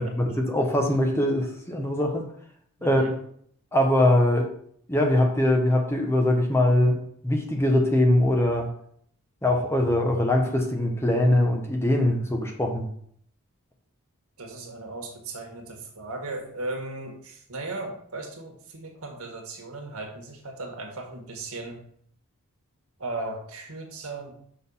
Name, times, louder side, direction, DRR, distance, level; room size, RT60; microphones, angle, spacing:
voice 1, 0.0-2.3 2.8-3.0 3.7-4.5 4.9-7.0 7.2-8.7 9.4-12.9, left 1 dB, 10° left, 2 dB, 0.9 m, -22 dB
voice 2, 2.8-3.1 14.4-21.8 23.0-24.4, right 2 dB, 85° right, 2 dB, 1.6 m, -37 dB
6.5 x 3.8 x 5.5 m, 0.64 s
head